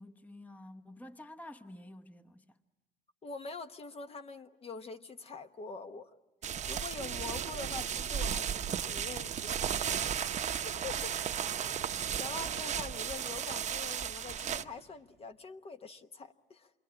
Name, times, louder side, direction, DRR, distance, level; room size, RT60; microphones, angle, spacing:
voice 1, 0.0-2.6, left 1 dB, 10° left, 0.9 m, -50 dB
voice 2, 3.2-6.2 6.7-11.7 12.0-16.7, left 4 dB, 35° left, 1.0 m, -45 dB
sound 1, 6.4-14.6, right 8 dB, 45° right, 0.9 m, -35 dB
sound 2, 7.0-15.3, right 11 dB, 85° right, 1.1 m, -53 dB
28.0 x 22.0 x 8.7 m
cardioid pair, 110°, 17 cm